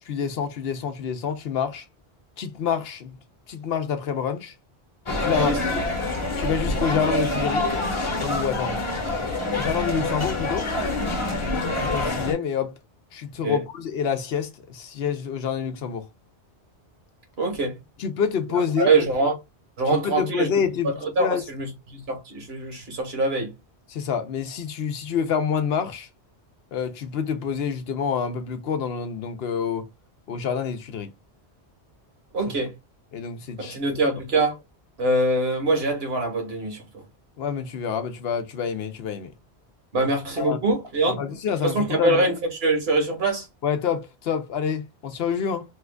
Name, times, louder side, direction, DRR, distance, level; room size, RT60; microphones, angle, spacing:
voice 1, 0.0-1.8 2.4-3.2 3.5-4.5 5.2-5.8 6.4-7.7 8.2-8.8 9.6-10.7 11.8-12.8 13.1-16.1 18.0-18.9 19.9-21.4 23.9-26.1 26.7-29.9 30.3-31.1 33.1-33.8 37.4-39.3 40.0-40.6 41.1-42.2 43.6-45.6, left 7 dB, 70° left, 0.8 m, -27 dB
sound 1, 5.1-12.3, left 2 dB, 30° left, 0.9 m, -26 dB
voice 2, 5.2-5.6 13.4-13.6 17.4-17.8 18.8-19.3 19.8-20.5 20.8-23.5 32.3-32.7 33.6-34.5 35.0-36.8 39.9-41.2 41.6-43.5, right 2 dB, 65° right, 1.5 m, -24 dB
3.1 x 2.3 x 3.4 m
omnidirectional pair, 1.1 m